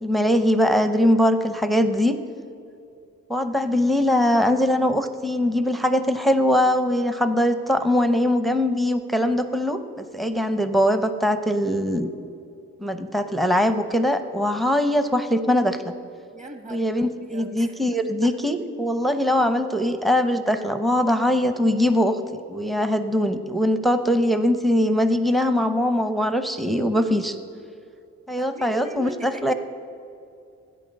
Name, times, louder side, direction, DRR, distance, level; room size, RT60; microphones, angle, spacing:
voice 1, 0.0-2.2 3.3-12.1 12.8-15.8 16.7-22.2 22.5-27.3 28.3-29.5, equal, ahead, 9 dB, 0.7 m, -21 dB
voice 2, 16.3-17.8 18.2-18.3 28.4-29.5, right 1 dB, 25° right, 6 dB, 1.6 m, -40 dB
13.0 x 9.1 x 6.5 m, 2.5 s
cardioid pair, 90°, 30 cm